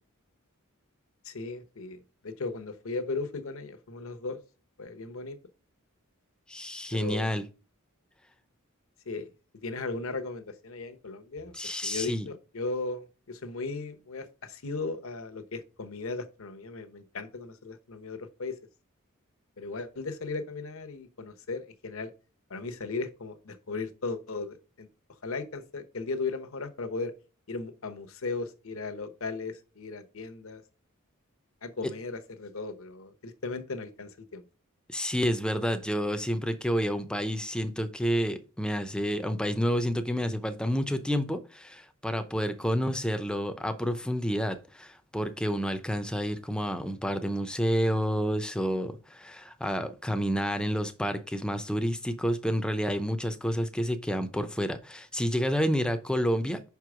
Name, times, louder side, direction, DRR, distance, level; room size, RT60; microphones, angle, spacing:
voice 1, 1.2-4.4 4.8-5.4 6.9-7.3 9.1-9.3 9.6-11.5 11.8-18.5 19.6-22.1 22.5-24.9 25.2-27.1 27.5-30.6 31.6-34.4, left 3 dB, 65° left, 0.9 m, -36 dB
voice 2, 6.5-7.4 11.5-12.3 34.9-56.6, equal, 5° left, 0.6 m, -29 dB
5.7 x 4.7 x 4.8 m
head